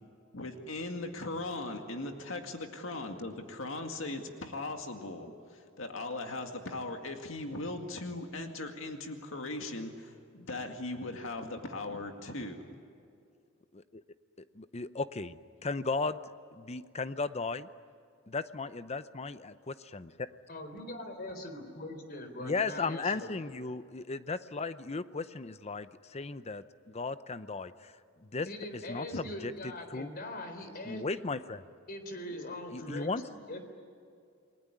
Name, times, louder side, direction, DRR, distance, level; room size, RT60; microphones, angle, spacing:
voice 1, 0.3-12.8 29.1-29.2 32.3-32.6, left 2 dB, 70° left, 4 dB, 2.1 m, -39 dB
voice 2, 14.5-16.2 16.5-17.7 18.3-20.1 22.4-27.9 28.2-28.5 28.7-30.1 30.8-31.7 32.7-33.2, left 3 dB, 30° left, 13 dB, 0.7 m, -36 dB
voice 3, 20.5-23.3 28.5-31.0 31.9-33.6, left 1 dB, 50° left, 7 dB, 3.8 m, -42 dB
29.0 x 20.5 x 9.8 m, 2.4 s
head